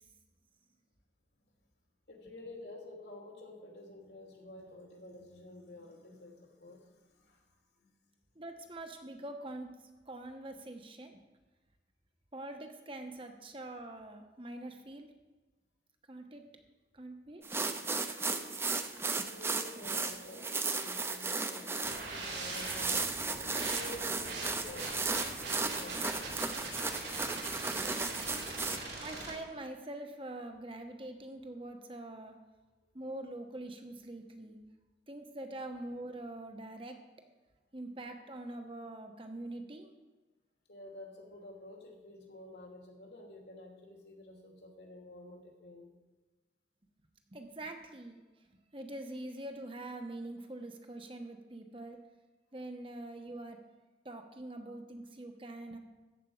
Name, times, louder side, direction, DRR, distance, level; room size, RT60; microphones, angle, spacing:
voice 1, 2.1-7.4 7.8-7.9 19.1-23.3 23.6-26.2 32.8-32.9 40.7-45.9, left 1 dB, 70° left, 1 dB, 2.8 m, -50 dB
voice 2, 8.3-9.7 10.0-11.2 12.3-15.1 16.1-16.4 16.9-17.4 19.2-19.3 19.8-20.0 29.0-32.3 32.9-34.6 35.1-36.9 37.7-39.9 47.3-48.2 48.7-52.0 52.5-53.6 54.0-55.8, right 1 dB, 30° right, 5 dB, 1.2 m, -44 dB
sound 1, 17.4-28.8, right 4 dB, 15° right, 0.7 m, -35 dB
sound 2, 21.8-29.3, right 2 dB, 85° right, 3.9 m, -42 dB
14.0 x 5.6 x 8.9 m, 1.2 s
head